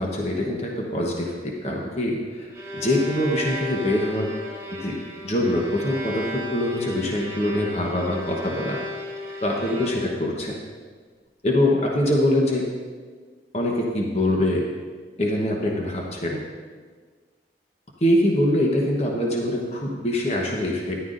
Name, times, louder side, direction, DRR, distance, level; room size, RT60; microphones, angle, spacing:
voice 1, 0.0-4.3 4.8-5.0 5.2-8.8 9.4-10.5 11.4-12.6 13.5-14.6 15.2-16.4 18.0-21.0, left 1 dB, 35° left, -1 dB, 1.1 m, -24 dB
Bowed string instrument, 2.4-10.3, left 2 dB, 20° right, 1.9 m, -34 dB
13.5 x 11.0 x 2.6 m, 1.5 s
head